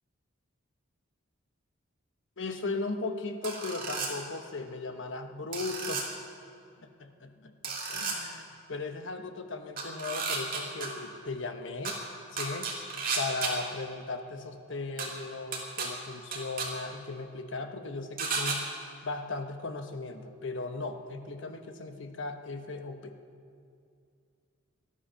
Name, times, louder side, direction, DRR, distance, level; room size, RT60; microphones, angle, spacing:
voice 1, 2.4-6.0 6.8-12.0 12.3-12.9 13.2-18.6 19.0-23.2, left 3 dB, 65° left, 6 dB, 1.1 m, -37 dB
sound 1, 3.4-4.1 5.5-6.0 7.6-8.1 9.8-10.9 11.8-11.9 12.4-13.5 15.0-15.1 15.5-15.9 16.3-16.7 18.2-18.6, right 4 dB, 40° right, 2.6 m, -32 dB
19.0 x 13.0 x 5.8 m, 2.4 s
head